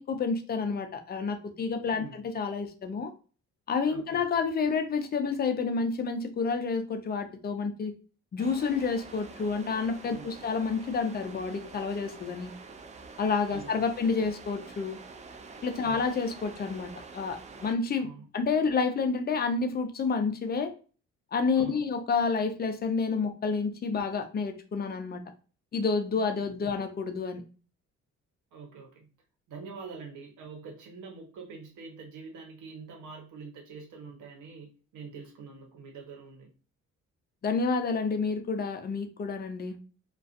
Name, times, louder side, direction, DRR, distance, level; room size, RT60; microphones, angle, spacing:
voice 1, 0.0-3.1 3.7-7.9 8.3-12.5 13.2-15.0 15.6-18.1 18.3-20.7 21.3-25.2 25.7-27.4 37.4-39.8, left 5 dB, 30° left, 7 dB, 0.5 m, -29 dB
voice 2, 1.8-2.2 3.9-4.2 10.1-10.3 13.5-13.7 15.8-16.1 18.0-18.3 21.5-21.8 28.5-29.1 29.5-36.5, right 4 dB, 75° right, 1 dB, 1.0 m, -45 dB
sound 1, 8.4-17.8, right 4 dB, 25° right, 0.4 m, -47 dB
2.4 x 2.3 x 2.5 m, 0.37 s
cardioid pair, 90°, 30 cm